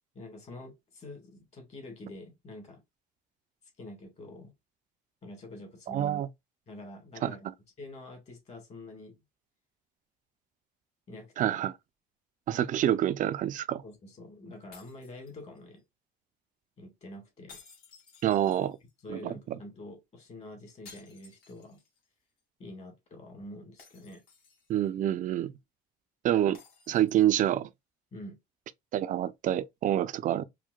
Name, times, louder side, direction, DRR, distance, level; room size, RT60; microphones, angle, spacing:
voice 1, 0.2-2.8 3.8-4.5 5.2-6.2 6.7-7.5 7.8-9.2 11.1-11.6 13.8-15.8 16.8-17.6 19.0-21.8 22.6-24.2 28.1-28.4, left 1 dB, 40° left, 1.9 m, -46 dB
voice 2, 5.9-6.3 7.2-7.3 11.4-11.7 12.5-13.8 18.2-18.8 19.1-19.3 24.7-25.5 26.2-26.6 26.9-27.7 28.9-30.4, right 11 dB, 50° right, 0.4 m, -27 dB
sound 1, 14.7-15.8 17.5-19.1 20.9-22.1 22.4-22.5 23.8-24.9 26.5-27.5, left 5 dB, 65° left, 1.7 m, -56 dB
4.5 x 2.1 x 2.3 m
cardioid pair, 110°, 17 cm